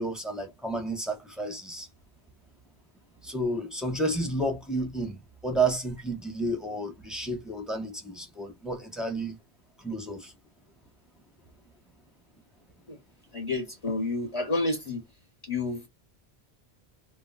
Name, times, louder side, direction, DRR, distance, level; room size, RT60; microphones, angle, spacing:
voice 1, 0.0-1.9 3.2-9.4 9.8-10.3, right 2 dB, ahead, 0.6 m, -31 dB
voice 2, 13.3-15.0 15.5-15.9, left 2 dB, 35° left, 0.9 m, -29 dB
2.3 x 2.1 x 3.7 m
omnidirectional pair, 1.1 m